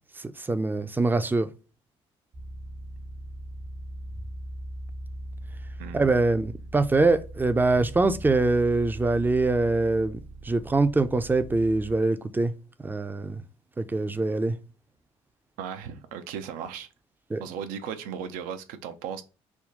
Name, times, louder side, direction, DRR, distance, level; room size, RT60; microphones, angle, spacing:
voice 1, 0.4-1.5 5.9-10.2 10.4-12.5 12.8-13.4 13.8-14.6 17.3-17.4, right 3 dB, 15° right, 0.5 m, -24 dB
sound 1, 2.3-12.0, right 1 dB, 45° right, 0.9 m, -40 dB
voice 2, 5.8-6.1 15.6-16.9 17.4-19.2, right 7 dB, 65° right, 0.5 m, -36 dB
3.5 x 2.2 x 3.8 m
hypercardioid pair, 50°, 15 cm